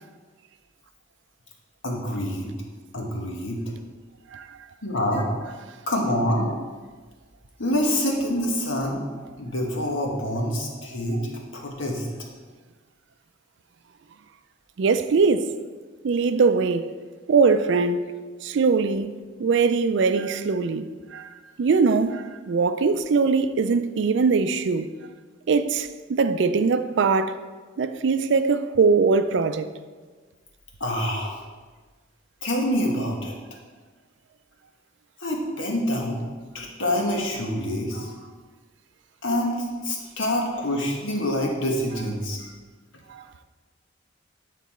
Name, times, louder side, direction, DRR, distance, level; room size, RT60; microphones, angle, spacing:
voice 1, 1.8-2.5 2.9-3.6 4.8-5.3 5.9-6.5 7.6-9.0 9.4-11.2 11.5-12.1 30.8-31.4 32.4-33.3 35.2-36.3 36.5-38.3 39.2-42.5, left 1 dB, 75° left, 1.3 m, -26 dB
voice 2, 14.8-15.5 16.0-16.9 17.3-18.1 18.4-20.9 21.1-21.3 21.6-24.9 25.5-27.4 27.8-29.7 43.1-43.2, right 4 dB, 65° right, 0.4 m, -21 dB
9.2 x 4.1 x 4.2 m
head